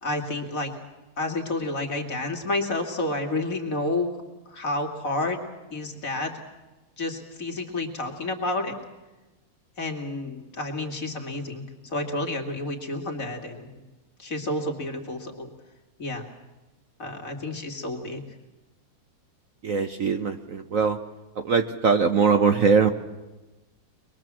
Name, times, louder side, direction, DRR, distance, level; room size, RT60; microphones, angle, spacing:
voice 1, 0.0-0.7 1.2-4.1 4.5-5.4 5.7-6.3 7.0-8.7 9.8-13.7 14.2-15.5 16.0-16.3 17.0-18.2, left 2 dB, 45° left, 3 dB, 2.8 m, -30 dB
voice 2, 19.6-21.0 21.4-22.9, right 5 dB, 50° right, 8 dB, 1.2 m, -21 dB
24.0 x 21.5 x 7.5 m, 1.1 s
omnidirectional pair, 2.0 m